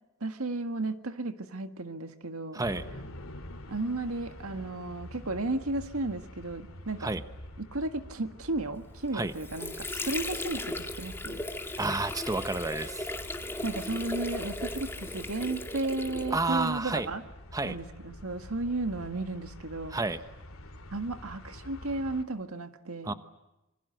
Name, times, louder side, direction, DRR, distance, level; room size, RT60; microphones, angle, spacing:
voice 1, 0.2-2.6 3.7-7.1 7.6-11.4 13.6-17.2 17.6-20.0 20.9-23.1, right 2 dB, 85° right, 8 dB, 1.8 m, -34 dB
sound 1, 2.6-22.2, left 1 dB, 70° left, 2.8 m, -46 dB
Water / Sink (filling or washing), 9.0-16.7, left 2 dB, 10° left, 2.1 m, -37 dB
voice 2, 11.8-13.0 16.3-17.1 17.5-17.8 19.9-20.2 23.0-23.1, right 2 dB, 15° right, 10 dB, 1.0 m, -30 dB
27.0 x 25.0 x 8.0 m, 0.96 s
head